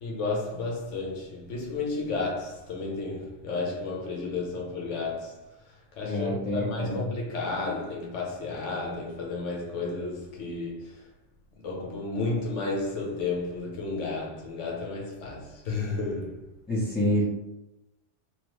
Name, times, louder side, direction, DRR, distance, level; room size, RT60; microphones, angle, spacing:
voice 1, 0.0-5.3 6.0-11.0 11.6-16.4, left 3 dB, 80° left, 1.1 m, -32 dB
voice 2, 6.0-7.1 16.7-17.2, equal, 15° left, 0.4 m, -27 dB
3.0 x 2.3 x 3.0 m
omnidirectional pair, 1.2 m